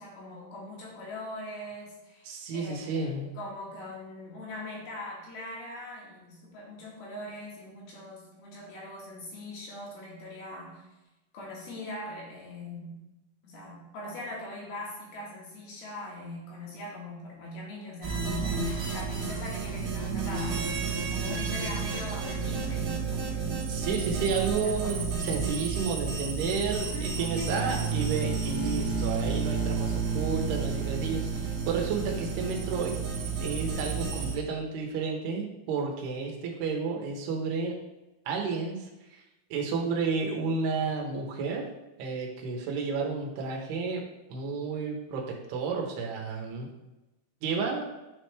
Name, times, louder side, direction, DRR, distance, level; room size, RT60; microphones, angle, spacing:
voice 1, 0.0-10.9 11.3-13.0 13.4-20.7 21.1-25.2 26.8-27.9, left 1 dB, 75° left, -3 dB, 3.3 m, -41 dB
voice 2, 2.3-3.3 23.7-32.9 33.4-37.7 38.3-39.2 39.5-41.7 42.0-44.0 44.3-46.7 47.4-47.8, right 4 dB, 80° right, 0 dB, 3.0 m, -31 dB
sound 1, 18.0-34.3, right 5 dB, 50° right, 1.9 m, -31 dB
9.5 x 3.3 x 3.2 m, 1.0 s
omnidirectional pair, 4.6 m